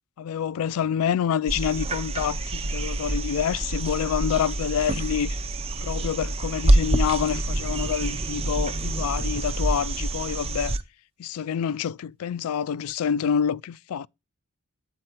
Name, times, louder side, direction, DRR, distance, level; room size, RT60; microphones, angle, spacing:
voice 1, 0.2-5.4 5.8-10.8 11.2-14.1, left 8 dB, 75° left, 0.3 m, -27 dB
sound 1, 1.5-10.8 12.9-13.0, right 2 dB, 25° right, 0.5 m, -26 dB
8.1 x 4.2 x 4.3 m
head